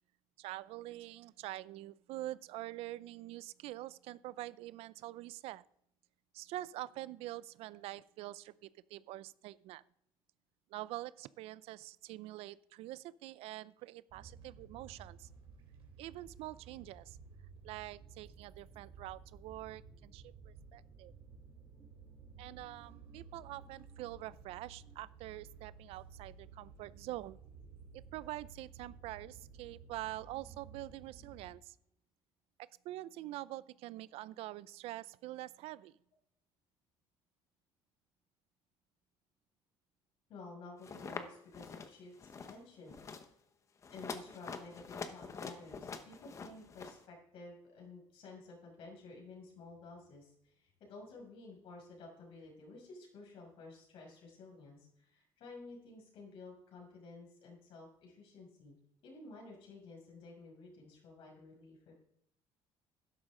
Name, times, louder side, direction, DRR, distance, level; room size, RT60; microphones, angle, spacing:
voice 1, 0.4-5.6 6.3-9.8 10.7-15.3 16.0-17.2 17.6-21.1 22.4-27.4 27.9-31.8 32.6-36.0, right 16 dB, 80° right, 19 dB, 0.4 m, -45 dB
sound 1, 14.1-31.5, right 5 dB, 65° right, 3.3 m, -55 dB
voice 2, 40.3-43.2 43.9-58.7 59.0-61.9, left 3 dB, 65° left, -1 dB, 6.0 m, -53 dB
sound 2, 40.8-41.2 41.5-41.9 42.2-42.6 42.9-43.3 43.8-47.0, left 5 dB, 30° left, 1.0 m, -45 dB
12.5 x 11.0 x 3.8 m, 0.72 s
cardioid pair, 145°, 10 cm